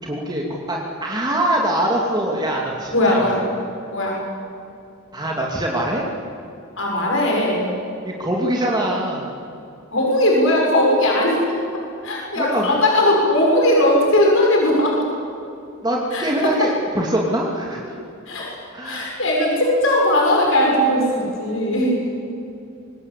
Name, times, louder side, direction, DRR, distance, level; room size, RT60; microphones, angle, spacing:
voice 1, 0.0-3.5 5.1-6.1 8.1-9.3 12.4-12.8 15.8-18.0 18.7-19.1, right 1 dB, 20° right, -2 dB, 2.7 m, -23 dB
voice 2, 2.9-3.4 3.9-4.2 6.8-7.7 9.9-11.6 12.0-15.0 16.1-16.2 18.3-18.6 18.8-22.0, left 1 dB, 65° left, -2 dB, 6.5 m, -18 dB
25.5 x 22.0 x 8.5 m, 2.6 s
head